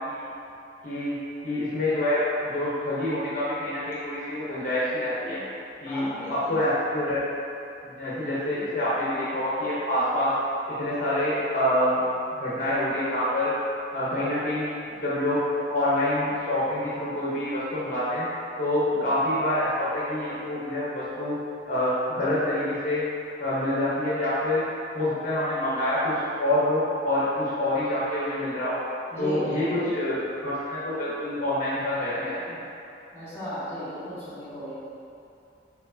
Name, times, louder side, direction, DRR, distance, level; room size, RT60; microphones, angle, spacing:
voice 1, 0.8-1.2 1.4-5.4 5.8-6.0 6.3-7.2 7.8-10.3 10.7-12.0 12.4-13.5 13.9-14.7 15.0-18.3 18.6-21.4 21.6-23.0 23.4-24.6 24.9-28.8 29.2-32.6, left 1 dB, 50° left, -9 dB, 0.8 m, -26 dB
voice 2, 5.8-6.6 18.9-19.1 29.1-29.9 33.1-34.8, left 1 dB, 15° left, -13 dB, 1.4 m, -35 dB
4.3 x 4.3 x 2.7 m, 2.7 s
head